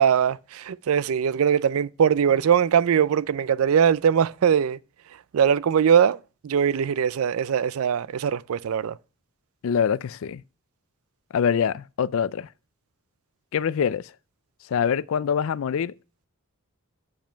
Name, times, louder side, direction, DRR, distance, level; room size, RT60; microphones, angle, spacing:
voice 1, 0.0-4.8 5.3-6.2 6.4-9.0, right 8 dB, 70° right, 0.4 m, -21 dB
voice 2, 9.6-10.4 11.3-12.5 13.5-14.1 14.7-15.9, left 7 dB, 65° left, 0.4 m, -24 dB
7.4 x 7.3 x 4.5 m
head